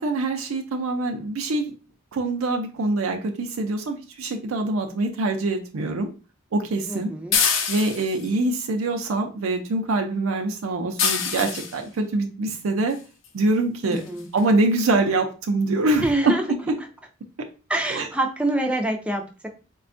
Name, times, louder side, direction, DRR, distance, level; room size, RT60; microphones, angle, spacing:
voice 1, 0.0-1.7 2.1-6.1 6.5-7.1 7.7-13.0 13.3-14.0 14.3-16.3 17.9-18.1, right 2 dB, 90° right, 4 dB, 0.5 m, -24 dB
voice 2, 6.9-7.4 13.8-14.3 16.0-16.5 16.8-16.9 17.7-19.5, right 1 dB, 5° right, 2 dB, 0.3 m, -26 dB
sound 1, 7.3-8.3 11.0-11.8 13.2-13.3 13.9-14.1 14.4-14.5 14.8-14.9, left 6 dB, 70° left, 0.6 m, -24 dB
4.2 x 2.2 x 2.5 m, 0.35 s
head